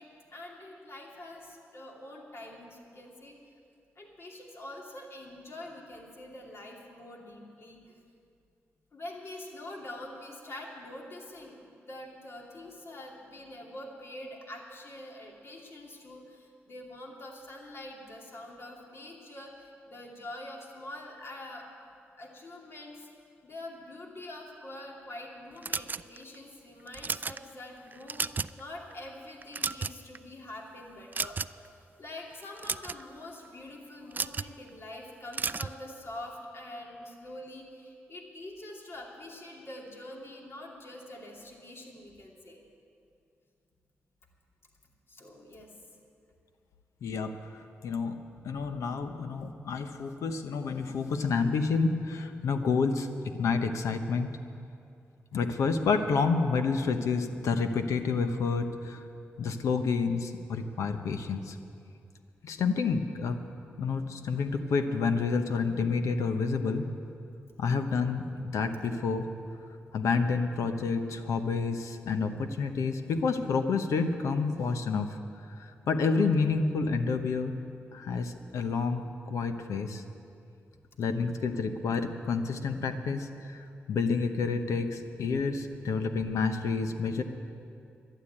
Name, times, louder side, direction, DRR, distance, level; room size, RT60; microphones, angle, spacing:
voice 1, 0.0-3.4 4.0-7.9 8.9-23.1 23.4-31.4 31.7-42.6 45.1-45.8 48.1-48.2, left 1 dB, 55° left, -1 dB, 2.8 m, -45 dB
sound 1, 25.6-26.3 26.9-27.4 27.9-28.6 28.9-29.1 29.4-30.2 31.1-31.7 32.4-33.0 34.1-34.5 35.3-35.8, right 4 dB, 35° right, 0.3 m, -33 dB
voice 2, 47.0-47.3 47.8-48.2 48.4-54.3 55.3-59.0 59.4-61.6 62.4-63.4 63.8-66.9 67.6-69.3 69.9-75.2 75.6-77.6 77.9-80.0 81.0-87.2, left 4 dB, 80° left, 8 dB, 0.9 m, -29 dB
11.5 x 11.0 x 8.7 m, 2.5 s
supercardioid pair, 50°, 5 cm